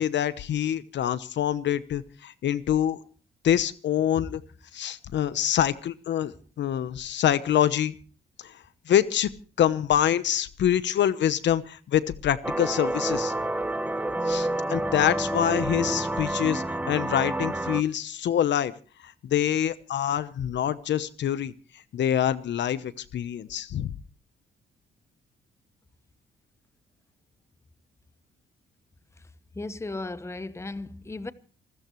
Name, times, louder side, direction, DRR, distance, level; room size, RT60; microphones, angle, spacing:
voice 1, 0.0-3.0 3.4-4.4 4.7-7.9 8.4-8.5 8.9-9.3 9.6-13.3 14.2-18.7 19.0-23.9, left 10 dB, 65° left, 1.0 m, -26 dB
sound 1, 12.4-17.8, right 1 dB, 5° right, 0.9 m, -28 dB
voice 2, 29.5-31.3, left 2 dB, 15° left, 1.1 m, -35 dB
27.0 x 14.0 x 3.1 m
cardioid pair, 90°, 20 cm